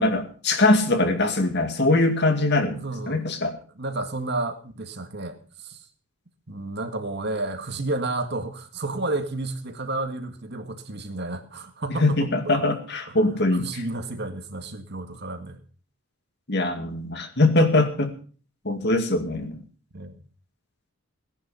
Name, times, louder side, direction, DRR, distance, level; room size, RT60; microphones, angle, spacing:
voice 1, 0.0-2.8 3.1-3.5 12.0-13.8 16.5-18.1 18.6-19.6, left 2 dB, 50° left, 7 dB, 2.2 m, -22 dB
voice 2, 2.8-3.2 3.8-5.8 6.5-12.6 13.1-15.6 19.9-20.2, right 2 dB, 50° right, 7 dB, 1.8 m, -31 dB
18.0 x 10.5 x 5.6 m, 0.42 s
head